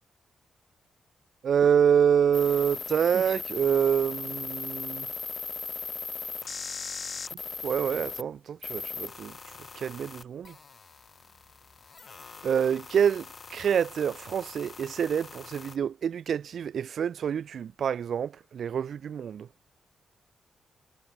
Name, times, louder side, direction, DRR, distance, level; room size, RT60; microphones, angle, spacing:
voice 1, 1.4-5.1 7.6-9.3 9.8-10.5 12.4-13.2 13.5-19.5, right 8 dB, 65° right, 2.6 m, -26 dB
sound 1, 2.3-8.2 8.6-15.8, left 5 dB, 35° left, 2.2 m, -39 dB
wide cardioid pair, 130°, 0 cm